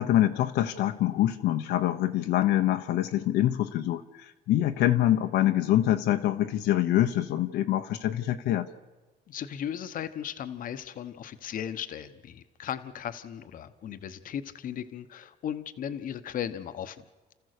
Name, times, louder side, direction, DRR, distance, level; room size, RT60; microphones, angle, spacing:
voice 1, 0.0-8.7, left 13 dB, 80° left, 6 dB, 0.9 m, -25 dB
voice 2, 9.3-17.0, left 9 dB, 55° left, 11 dB, 1.0 m, -36 dB
30.0 x 14.5 x 6.6 m, 1.2 s
cardioid pair, 110°, 17 cm